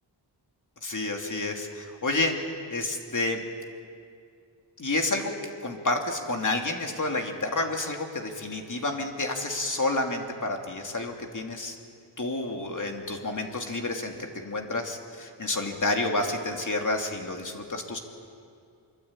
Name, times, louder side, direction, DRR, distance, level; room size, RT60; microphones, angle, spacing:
voice 1, 0.8-2.3 2.7-3.4 4.8-5.3 5.6-11.8 12.2-18.0, left 2 dB, 40° left, 2 dB, 2.9 m, -29 dB
25.0 x 23.5 x 8.9 m, 2.4 s
wide cardioid pair, 120°, 45 cm